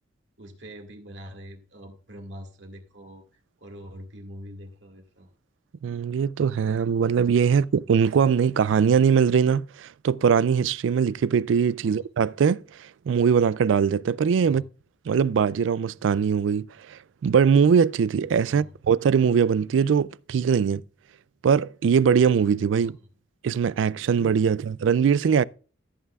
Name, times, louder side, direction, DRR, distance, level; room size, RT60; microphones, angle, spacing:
voice 1, 0.4-3.2 3.6-5.3 11.8-12.0 14.4-14.7 18.4-18.7 22.8-22.9, equal, 70° right, 2.0 m, -43 dB
voice 2, 5.8-12.6 13.1-14.6 15.1-20.8 21.4-23.0 23.4-25.4, right 6 dB, 90° right, 0.3 m, -21 dB
14.5 x 8.0 x 2.4 m
head